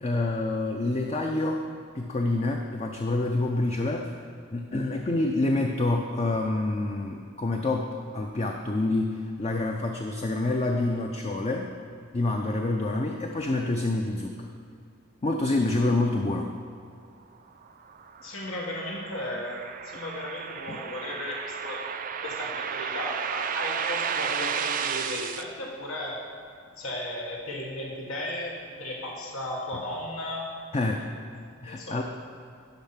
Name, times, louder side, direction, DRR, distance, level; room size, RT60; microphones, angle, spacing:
voice 1, 0.0-1.6 1.9-4.1 4.5-11.7 12.1-14.5 15.2-16.5 20.7-20.8 30.7-31.1 31.6-32.0, left 2 dB, 30° left, 2 dB, 0.5 m, -27 dB
sound 1, 17.6-25.4, right 7 dB, 40° right, 0.4 m, -33 dB
voice 2, 18.2-21.8 22.2-26.2 26.8-30.5 30.8-30.9 31.7-32.0, left 1 dB, 80° left, -2 dB, 1.5 m, -35 dB
10.5 x 5.6 x 5.8 m, 2.4 s
head